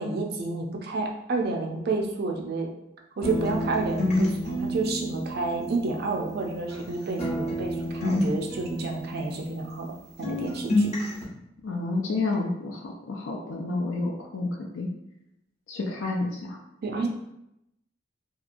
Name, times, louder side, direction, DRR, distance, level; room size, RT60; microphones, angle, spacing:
voice 1, 0.0-2.7 3.2-9.9 10.2-10.9 16.8-17.1, right 3 dB, 55° right, 2 dB, 0.4 m, -30 dB
sound 1, 3.2-6.9 7.2-10.0 10.2-11.2, left 1 dB, 35° left, 0.7 m, -29 dB
voice 2, 11.6-14.9 15.7-16.6, left 3 dB, 85° left, -1 dB, 0.4 m, -30 dB
2.8 x 2.3 x 2.5 m, 0.83 s
head